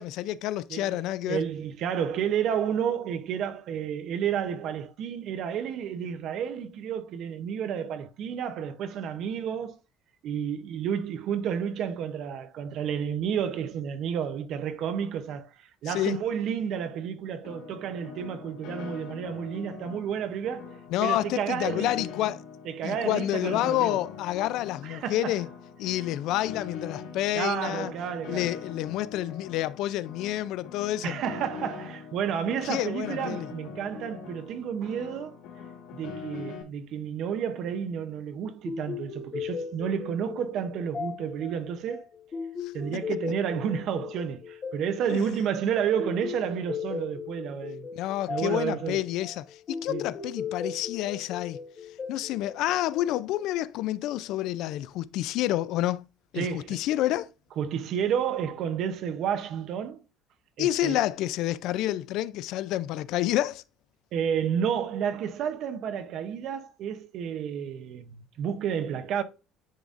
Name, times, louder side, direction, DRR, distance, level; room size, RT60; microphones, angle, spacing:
voice 1, 0.0-1.4 15.9-16.2 20.9-22.4 22.8-25.5 25.8-27.9 28.3-31.2 32.6-33.5 42.6-42.7 45.1-45.3 47.9-51.6 52.1-56.1 56.3-57.3 60.6-63.6, left 14 dB, 60° left, 0.3 m, -29 dB
voice 2, 0.7-9.8 10.2-15.5 15.8-21.9 22.7-24.0 24.8-25.4 27.3-28.5 31.0-35.4 35.9-42.1 42.7-47.9 48.3-49.0 49.9-50.1 56.4-56.8 57.6-60.0 60.6-61.0 64.1-69.2, right 8 dB, 45° right, 0.7 m, -31 dB
Piano, 17.4-36.6, left 6 dB, 75° left, 1.9 m, -43 dB
sound 1, 38.7-53.4, left 6 dB, 25° left, 1.1 m, -38 dB
10.0 x 3.9 x 2.5 m
cardioid pair, 175°, 0 cm